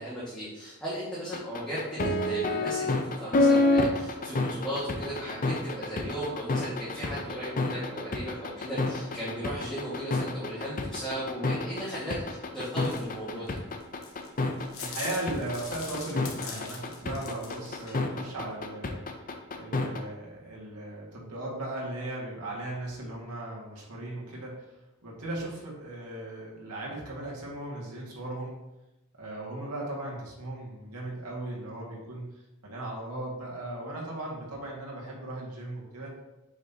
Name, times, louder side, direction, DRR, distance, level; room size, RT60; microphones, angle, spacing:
voice 1, 0.0-13.5, equal, 5° left, -10 dB, 1.8 m, -36 dB
sound 1, 1.3-20.0, left 2 dB, 40° left, 0.7 m, -28 dB
sound 2, 12.8-18.0, left 5 dB, 65° left, 1.1 m, -43 dB
voice 2, 14.8-19.3 19.6-24.7 25.0-28.6 29.2-32.3 32.6-36.1, right 1 dB, 85° right, -4 dB, 2.0 m, -37 dB
7.9 x 5.3 x 2.9 m, 0.98 s
head